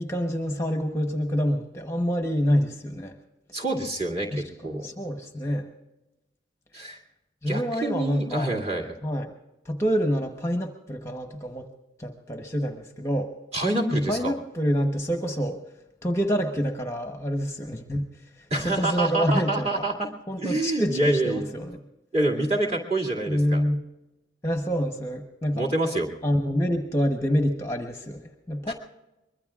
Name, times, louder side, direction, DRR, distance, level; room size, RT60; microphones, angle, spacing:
voice 1, 0.0-3.2 4.3-5.7 7.4-8.5 9.0-9.3 9.6-11.7 12.0-13.3 13.9-15.6 16.0-18.1 18.4-19.8 20.3-21.8 23.3-23.8 24.4-25.7 26.2-28.7, equal, 15° left, 5 dB, 1.0 m, -27 dB
voice 2, 3.5-4.9 6.7-7.0 7.5-9.0 13.5-14.3 18.5-20.1 20.4-21.5 22.1-23.6 25.5-26.1 28.7-28.8, right 2 dB, 30° right, -1 dB, 2.4 m, -27 dB
24.0 x 21.5 x 2.4 m, 0.97 s
head